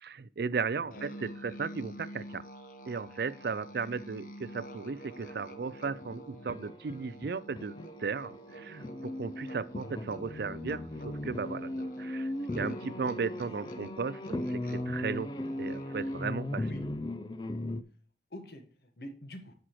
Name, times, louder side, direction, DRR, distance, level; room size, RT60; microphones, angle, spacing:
voice 1, 0.0-2.4 2.9-15.3 15.6-16.7, right 5 dB, 65° right, 0.4 m, -36 dB
voice 2, 0.7-1.1 13.0-13.1 13.4-13.7 16.6-16.8 18.3-19.5, left 1 dB, 65° left, 1.5 m, -46 dB
Musical instrument, 0.9-16.5, right 1 dB, 50° left, 1.0 m, -48 dB
sound 1, 4.9-8.0 8.3-17.8, left 1 dB, 25° left, 0.4 m, -38 dB
9.9 x 6.2 x 3.1 m
head